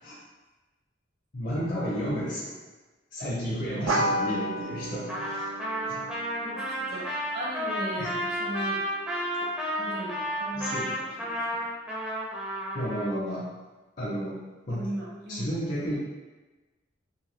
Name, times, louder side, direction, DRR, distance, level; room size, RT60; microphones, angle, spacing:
voice 1, 1.3-2.5 3.1-5.5 5.8-6.0 6.9-7.0 8.0-8.2 9.4-9.5 10.5-10.9 12.7-13.5 14.0-14.4 14.7-14.8 15.3-15.9, equal, 40° left, -8 dB, 0.6 m, -32 dB
sound 1, 3.9-8.8, right 1 dB, 90° right, 0.4 m, -33 dB
Trumpet, 5.1-13.1, equal, 5° right, 0.4 m, -32 dB
voice 2, 6.4-8.8 9.8-11.7 14.7-15.5, right 1 dB, 50° right, -5 dB, 0.8 m, -38 dB
2.8 x 2.2 x 3.1 m, 1.2 s
head